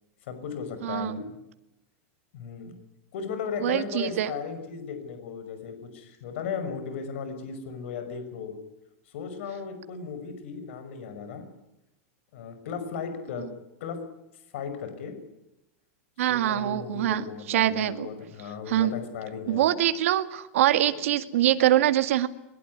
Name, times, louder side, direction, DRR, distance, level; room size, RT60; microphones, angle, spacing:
voice 1, 0.2-1.3 2.3-2.7 3.1-8.5 9.1-11.4 12.3-13.5 13.8-14.0 14.5-15.1 16.3-19.7, left 6 dB, 60° left, 8 dB, 5.8 m, -36 dB
voice 2, 0.8-1.2 3.6-4.3 16.2-18.1 18.7-18.9 19.5-22.3, right 12 dB, 70° right, 10 dB, 2.1 m, -24 dB
22.5 x 22.0 x 9.8 m, 0.91 s
supercardioid pair, 175°, 7 cm